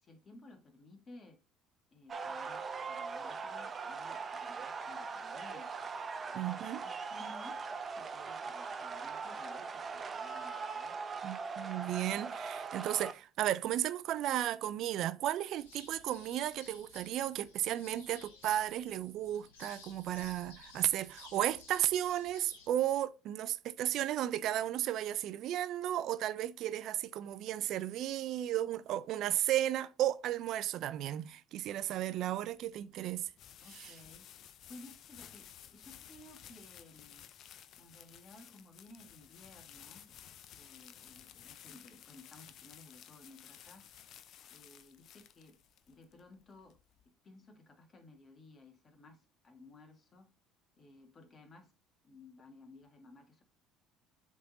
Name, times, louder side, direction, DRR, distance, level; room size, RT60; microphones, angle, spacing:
voice 1, 0.0-1.4 1.9-5.7 6.5-11.0 33.6-34.3 34.7-37.2 37.8-40.1 40.5-43.9 44.5-45.6 45.9-46.8 47.2-50.3 50.8-51.7 52.0-53.4, left 2 dB, 35° left, 1.8 m, -57 dB
sound 1, 2.1-13.1, right 5 dB, 35° right, 0.8 m, -41 dB
voice 2, 6.3-6.8 11.2-33.3 33.8-33.9, right 12 dB, 60° right, 0.5 m, -34 dB
sound 2, 15.5-22.7, left 5 dB, 85° left, 1.5 m, -57 dB
sound 3, 32.2-47.1, left 10 dB, 55° left, 0.6 m, -55 dB
7.6 x 3.7 x 4.0 m
hypercardioid pair, 65°, 0 cm